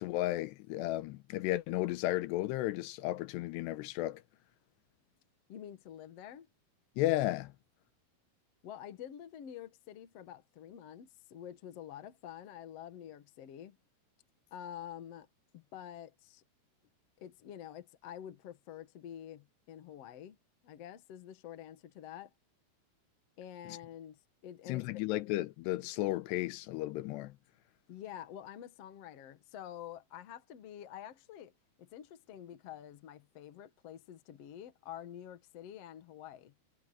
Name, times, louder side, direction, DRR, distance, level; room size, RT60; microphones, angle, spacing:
voice 1, 0.0-4.2 7.0-7.5 23.7-23.8 24.7-27.3, left 16 dB, 90° left, 2.9 m, -34 dB
voice 2, 5.5-6.5 8.6-13.8 14.5-15.3 15.5-16.4 17.2-20.4 20.6-22.3 23.4-25.0 27.9-31.5 31.8-36.5, left 10 dB, 60° left, 1.7 m, -48 dB
omnidirectional pair, 4.9 m